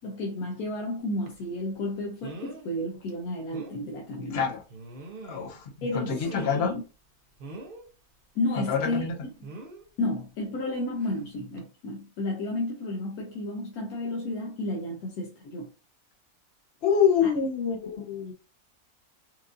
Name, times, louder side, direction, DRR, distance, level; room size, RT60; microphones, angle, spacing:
voice 1, 0.0-4.4 5.8-6.8 8.4-9.3 10.0-15.7 17.2-17.3, left 1 dB, 75° left, 1.1 m, -32 dB
sound 1, 1.3-1.4 2.2-2.7 3.1-3.2 3.5-3.8 4.7-5.6 6.0-6.8 7.4-7.8 9.4-9.8 11.0-11.2 11.6-11.7, right 2 dB, 50° right, 0.7 m, -42 dB
voice 2, 4.3-4.6 5.3-6.7 8.6-9.1 16.8-18.3, left 7 dB, 55° left, 0.8 m, -26 dB
4.5 x 2.5 x 2.5 m
omnidirectional pair, 1.6 m